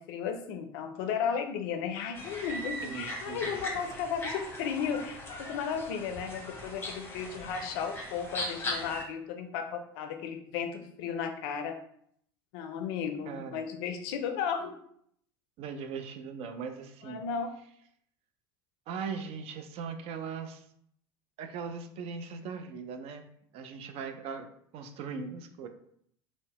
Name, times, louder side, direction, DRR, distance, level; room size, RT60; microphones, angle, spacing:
voice 1, 0.0-11.8 12.5-14.7 17.0-17.5, left 7 dB, 65° left, 6 dB, 0.4 m, -34 dB
sound 1, 2.1-9.0, left 1 dB, 15° left, 0.7 m, -39 dB
voice 2, 2.8-3.8 13.3-13.6 15.6-17.2 18.9-20.6 21.4-23.3 23.5-25.7, right 5 dB, 50° right, 8 dB, 0.4 m, -39 dB
2.6 x 2.0 x 2.9 m, 0.68 s
hypercardioid pair, 75°, 13 cm